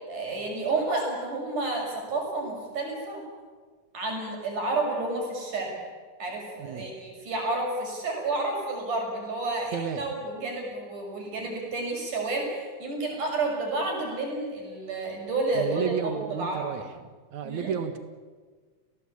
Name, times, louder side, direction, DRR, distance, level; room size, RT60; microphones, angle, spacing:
voice 1, 0.1-3.2 3.9-5.7 6.2-16.7 17.4-17.7, right 2 dB, 90° right, 1 dB, 7.7 m, -30 dB
voice 2, 9.7-10.1 15.5-16.9 17.3-18.0, right 7 dB, 70° right, 9 dB, 2.9 m, -31 dB
29.5 x 18.0 x 8.6 m, 1.5 s
omnidirectional pair, 3.5 m